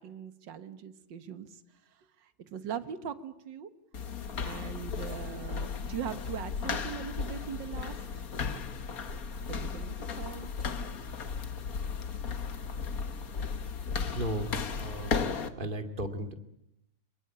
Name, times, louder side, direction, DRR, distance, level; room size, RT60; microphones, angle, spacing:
voice 1, 0.0-1.6 2.2-3.7 4.4-8.3 9.5-10.5, right 8 dB, 50° right, 11 dB, 1.5 m, -41 dB
sound 1, 3.9-15.5, left 5 dB, 45° left, 1.3 m, -35 dB
voice 2, 14.1-15.2 15.6-16.3, right 1 dB, 20° right, 7 dB, 1.8 m, -35 dB
26.5 x 23.0 x 8.8 m, 0.77 s
omnidirectional pair, 3.4 m